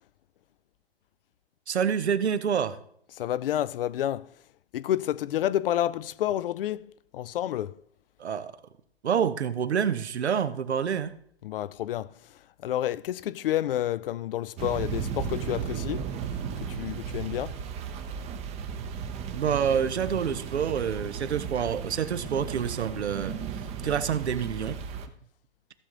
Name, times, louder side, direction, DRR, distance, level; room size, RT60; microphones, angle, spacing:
voice 1, 1.7-2.8 8.2-8.6 9.0-11.1 19.3-23.4 23.8-24.8, right 7 dB, 85° right, 0.9 m, -27 dB
voice 2, 3.2-4.3 4.7-7.7 11.4-16.1 16.6-17.6, left 12 dB, 60° left, 0.5 m, -30 dB
sound 1, 14.6-25.1, right 7 dB, 20° right, 0.7 m, -35 dB
15.0 x 6.7 x 3.8 m
hypercardioid pair, 125°, 32 cm